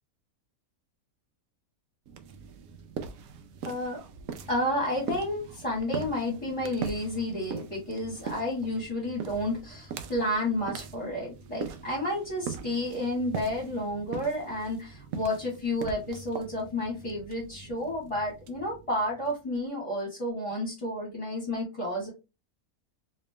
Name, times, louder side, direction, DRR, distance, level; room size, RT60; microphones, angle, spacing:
sound 1, 2.1-19.6, right 6 dB, 75° right, 1.0 m, -41 dB
voice 1, 3.6-4.0 4.5-22.1, left 1 dB, 25° left, -3 dB, 1.1 m, -31 dB
3.2 x 2.8 x 3.2 m, 0.28 s
omnidirectional pair, 1.5 m